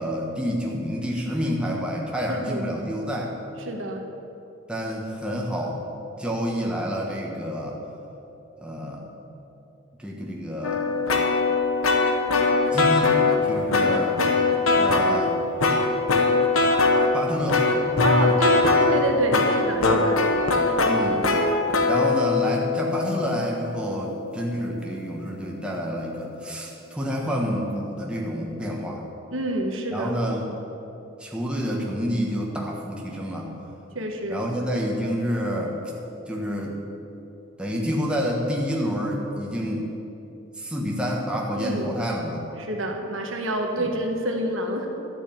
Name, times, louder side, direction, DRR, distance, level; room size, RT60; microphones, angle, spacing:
voice 1, 0.0-3.3 4.7-5.8 6.2-7.8 8.6-9.0 10.0-10.9 12.7-13.1 13.4-14.2 14.7-15.4 17.1-17.6 20.8-21.3 21.8-29.0 29.9-30.5 31.2-33.5 34.3-35.8 36.3-36.8 37.6-39.9 40.6-42.4 43.8-43.9, equal, 5° right, -2 dB, 1.3 m, -28 dB
voice 2, 3.6-4.0 18.0-20.2 29.3-30.1 33.9-34.4 41.5-41.9 42.6-44.9, right 1 dB, 70° right, 2 dB, 1.5 m, -27 dB
sound 1, 10.6-13.4 13.7-15.2 15.6-17.1 17.5-24.5, left 3 dB, 85° left, 1.2 m, -21 dB
12.0 x 6.4 x 8.8 m, 2.9 s
head